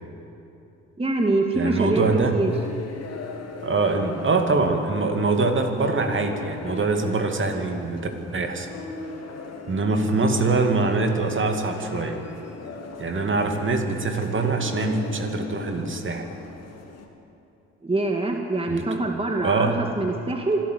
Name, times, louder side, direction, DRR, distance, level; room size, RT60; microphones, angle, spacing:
voice 1, 1.0-2.0 2.3-2.5 17.8-20.6, right 2 dB, 15° right, 3 dB, 2.0 m, -24 dB
voice 2, 1.5-2.4 3.6-8.7 9.7-12.2 13.0-16.3 18.7-19.0 19.4-19.8, right 3 dB, 35° right, 5 dB, 2.5 m, -24 dB
sound 1, 2.4-17.1, left 3 dB, 45° left, 3.0 m, -38 dB
25.0 x 12.5 x 8.1 m, 2.8 s
hypercardioid pair, 50°, 34 cm